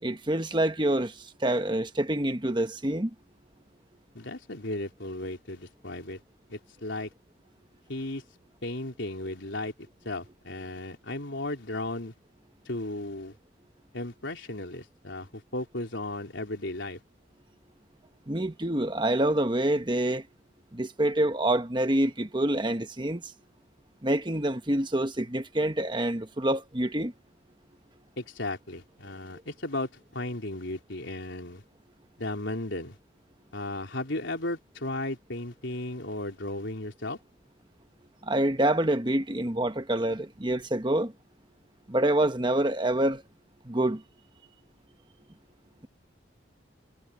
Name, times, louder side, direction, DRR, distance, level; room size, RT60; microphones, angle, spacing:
voice 1, 0.0-3.1 18.3-20.3 20.7-23.3 24.0-27.1 38.2-41.1 41.9-43.2 43.6-44.0, right 1 dB, 25° right, 1.2 m, -26 dB
voice 2, 4.1-6.2 6.5-7.1 7.9-8.2 8.6-12.1 12.7-13.3 13.9-17.0 28.2-31.6 32.2-33.0 33.5-37.2, left 2 dB, 75° left, 3.7 m, -35 dB
head